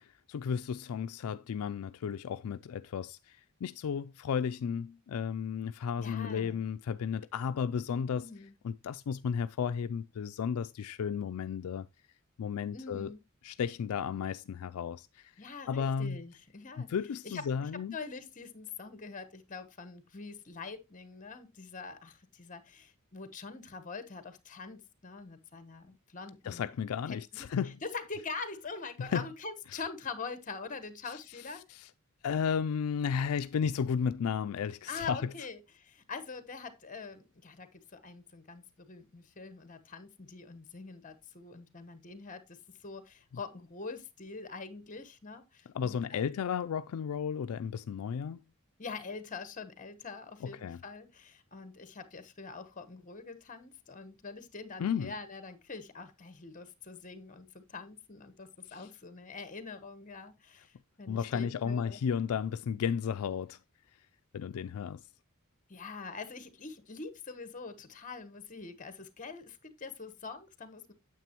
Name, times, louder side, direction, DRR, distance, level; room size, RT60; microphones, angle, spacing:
voice 1, 0.0-8.3 8.6-11.9 12.4-13.1 13.4-15.3 15.7-16.2 16.8-18.0 26.4-27.8 29.0-29.2 29.7-29.8 31.1-31.2 31.7-31.9 32.2-35.2 45.7-48.4 50.4-50.8 54.8-55.1 58.7-58.9 61.1-63.6 64.3-65.0, left 7 dB, 75° left, 0.4 m, -33 dB
voice 2, 6.0-6.6 8.1-8.5 12.7-13.2 15.4-16.9 17.2-26.7 27.1-27.5 27.8-31.6 34.9-46.2 48.8-62.0 65.7-70.9, left 4 dB, 35° left, 1.1 m, -44 dB
9.2 x 7.6 x 2.9 m
head